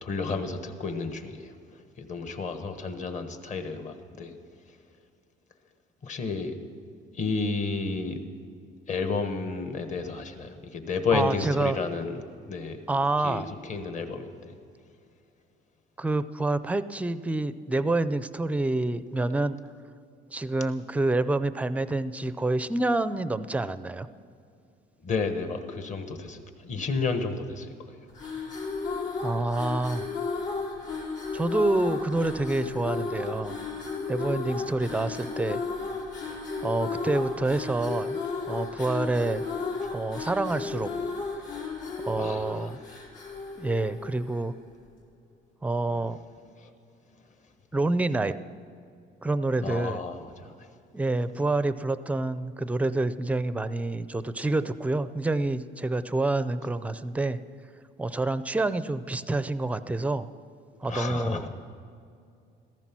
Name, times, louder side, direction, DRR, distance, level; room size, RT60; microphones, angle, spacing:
voice 1, 0.0-1.5 2.0-4.3 6.0-6.5 7.1-8.2 8.9-12.8 13.2-14.5 25.0-27.7 39.8-39.9 42.2-42.7 46.6-46.7 49.6-50.7 60.9-61.5, left 4 dB, 40° left, 7 dB, 1.3 m, -31 dB
voice 2, 11.1-11.8 12.9-13.5 16.0-19.6 20.3-24.1 29.2-30.1 31.3-33.6 34.1-35.6 36.6-38.2 38.5-39.4 39.9-40.9 42.0-42.8 43.6-44.5 45.6-46.2 47.7-48.3 49.2-50.0 50.9-57.4 58.0-60.3 60.8-61.5, right 2 dB, 5° right, 13 dB, 0.4 m, -27 dB
sound 1, 28.1-44.5, left 4 dB, 80° left, 4.8 m, -34 dB
15.5 x 15.0 x 6.1 m, 2.4 s
cardioid pair, 150°, 19 cm